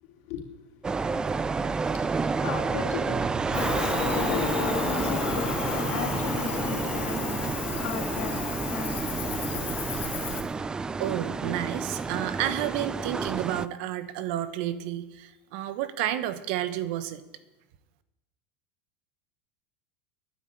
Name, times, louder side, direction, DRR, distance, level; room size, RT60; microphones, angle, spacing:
sound 1, 0.8-13.7, right 4 dB, 15° right, 0.4 m, -30 dB
voice 1, 1.9-3.2 3.4-9.7, left 7 dB, 60° left, 2 dB, 3.2 m, -36 dB
Cricket, 3.5-10.4, left 6 dB, 35° left, 2.9 m, -32 dB
voice 2, 11.0-17.2, right 12 dB, 60° right, 13 dB, 1.2 m, -31 dB
11.0 x 9.7 x 9.1 m, 1.0 s
supercardioid pair, 145°, 6 cm